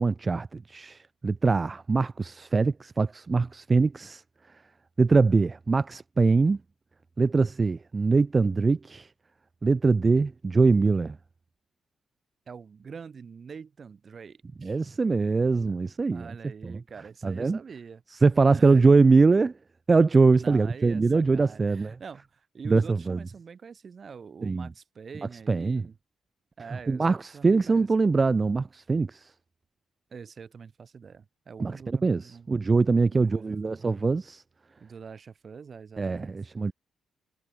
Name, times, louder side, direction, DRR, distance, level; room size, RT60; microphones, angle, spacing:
voice 1, 0.0-4.2 5.0-6.6 7.2-9.1 9.6-11.2 14.6-16.3 16.6-16.7 17.2-17.6 18.2-19.5 19.9-21.9 22.7-23.2 24.4-24.7 25.5-25.8 26.9-29.3 31.6-34.4 36.0-36.7, right 4 dB, 35° right, 0.3 m, -23 dB
voice 2, 12.5-14.8 15.7-18.0 18.5-18.8 20.3-26.0 26.6-27.9 30.1-32.5 33.1-33.8 34.8-36.3, right 6 dB, 50° right, 6.1 m, -45 dB
supercardioid pair, 60°, 0 cm